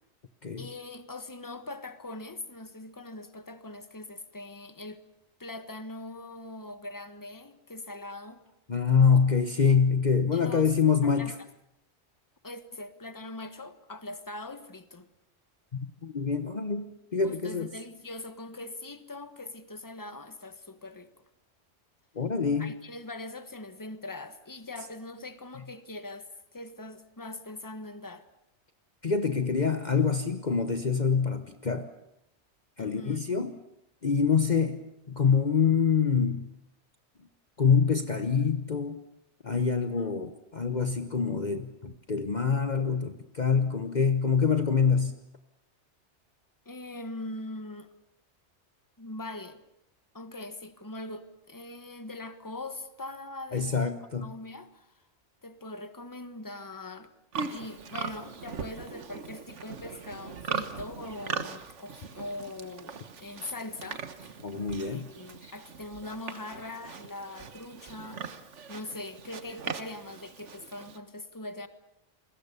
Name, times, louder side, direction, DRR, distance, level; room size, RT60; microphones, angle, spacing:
voice 1, 0.6-5.0 5.4-8.4 10.3-10.7 11.0-11.3 12.4-15.1 17.2-21.2 22.6-28.2 32.8-33.2 40.0-40.2 46.6-47.9 49.0-49.6 50.1-53.9 54.2-54.9 55.4-57.1 57.5-64.4 64.8-68.2 68.7-71.7, left 2 dB, 15° left, 10 dB, 1.4 m, -42 dB
voice 2, 8.7-11.4 15.7-17.7 22.1-22.7 29.0-31.9 32.8-33.6 34.0-34.8 35.1-36.5 37.6-39.0 39.4-45.2 53.5-54.3 64.4-65.1 65.4-65.5, left 6 dB, 40° left, 8 dB, 1.2 m, -25 dB
Livestock farm animals working animals, 57.3-71.0, right 5 dB, 85° right, 1.7 m, -40 dB
29.0 x 22.0 x 7.0 m, 0.82 s
omnidirectional pair, 1.2 m